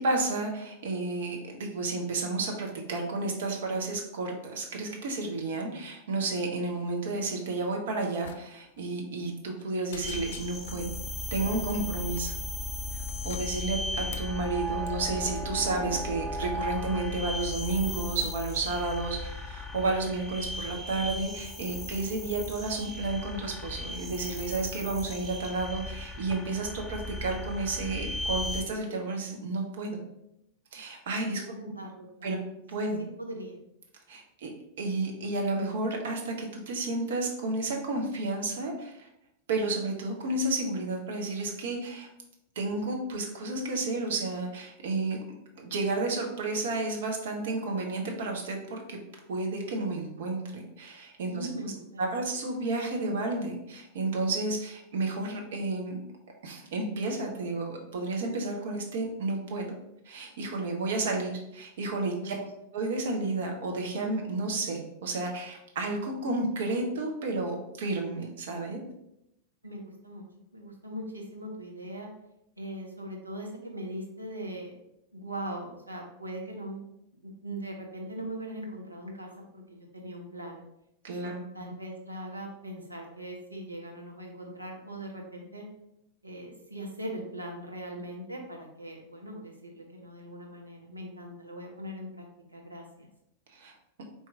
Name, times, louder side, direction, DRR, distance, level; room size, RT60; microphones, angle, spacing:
voice 1, 0.0-11.0 11.3-12.3 12.9-30.0 30.7-31.4 32.2-32.4 32.7-33.0 34.1-34.5 34.8-39.1 39.5-42.1 42.6-45.2 45.5-49.0 49.3-51.5 52.0-56.0 56.4-59.7 60.0-62.3 62.7-68.8 81.0-81.7 93.5-93.7, right 3 dB, 60° right, 1 dB, 1.0 m, -31 dB
sound 1, 8.2-8.4 8.7-8.8 9.2-9.6 9.9-10.8 11.7-12.4 12.9-14.4 14.8-15.1, left 6 dB, 60° left, 0.4 m, -47 dB
sound 2, 10.0-28.6, left 2 dB, 5° left, 0.6 m, -36 dB
voice 2, 31.2-32.3 32.8-32.9 33.2-33.6 51.3-52.1 62.2-62.5 69.6-70.2 70.5-72.1 72.6-74.7 75.1-76.8 77.2-80.6 81.2-85.6 86.2-92.3 92.5-93.1, right 1 dB, 85° right, -1 dB, 1.0 m, -40 dB
4.6 x 2.8 x 3.6 m, 0.82 s
figure-of-eight pair, 90°, 0 cm